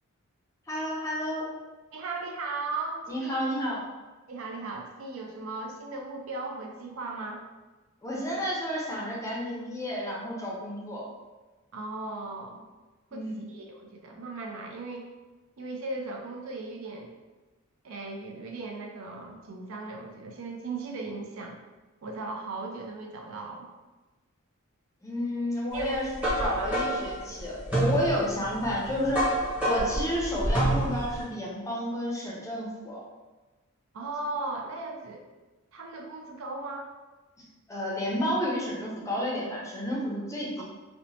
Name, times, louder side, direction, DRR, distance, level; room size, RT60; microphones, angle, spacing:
voice 1, 0.7-1.5 3.1-3.8 8.0-11.0 13.1-13.4 25.0-29.3 29.6-33.0 37.7-40.6, equal, 15° left, -4 dB, 0.5 m, -31 dB
voice 2, 1.9-3.4 4.3-7.4 11.7-12.7 13.1-15.1 15.6-17.1 17.8-21.6 22.0-23.7 25.7-26.7 33.9-35.2 35.7-36.9 40.6-40.7, right 3 dB, 70° right, 1 dB, 0.4 m, -37 dB
sound 1, 25.8-31.2, right 1 dB, 5° right, 0.8 m, -28 dB
2.8 x 2.1 x 2.7 m, 1.2 s
head